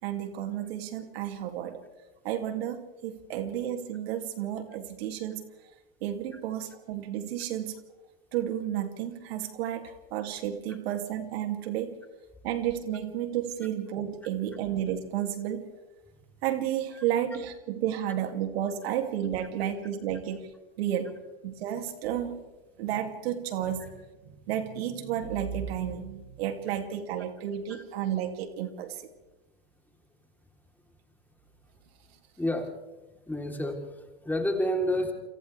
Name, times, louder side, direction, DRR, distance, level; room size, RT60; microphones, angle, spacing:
voice 1, 0.0-1.8 2.2-5.4 6.0-7.8 8.3-12.0 12.4-15.7 16.4-20.5 20.8-21.2 21.4-22.4 22.8-23.9 24.3-29.0, right 10 dB, 75° right, 6 dB, 2.7 m, -32 dB
voice 2, 32.4-32.7 33.3-35.1, left 1 dB, 5° left, 2 dB, 3.6 m, -29 dB
29.0 x 26.0 x 3.4 m, 1.1 s
supercardioid pair, 115°, 31 cm